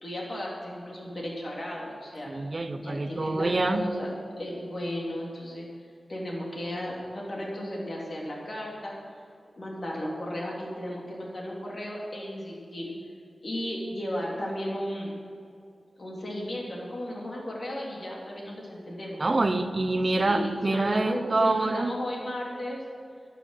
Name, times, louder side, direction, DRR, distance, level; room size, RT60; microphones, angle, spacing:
voice 1, 0.0-2.3 2.8-4.1 4.4-5.7 6.1-8.9 9.6-12.9 13.4-15.1 16.0-19.4 20.0-22.8, left 1 dB, 50° left, -3 dB, 3.5 m, -34 dB
voice 2, 2.2-3.9 19.2-22.0, right 2 dB, 45° right, 9 dB, 0.8 m, -26 dB
12.0 x 9.5 x 6.6 m, 2.4 s
wide cardioid pair, 85°, 0 cm